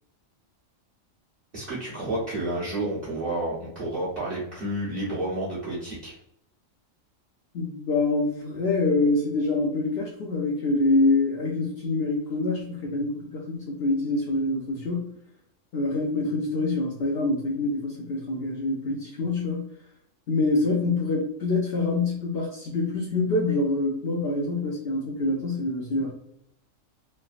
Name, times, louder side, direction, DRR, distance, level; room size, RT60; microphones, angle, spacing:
voice 1, 1.5-6.1, right 1 dB, 45° right, -8 dB, 1.1 m, -30 dB
voice 2, 7.5-15.2 15.7-19.7 20.3-26.1, left 2 dB, 60° left, -2 dB, 0.7 m, -25 dB
3.3 x 2.1 x 2.4 m, 0.75 s
omnidirectional pair, 1.4 m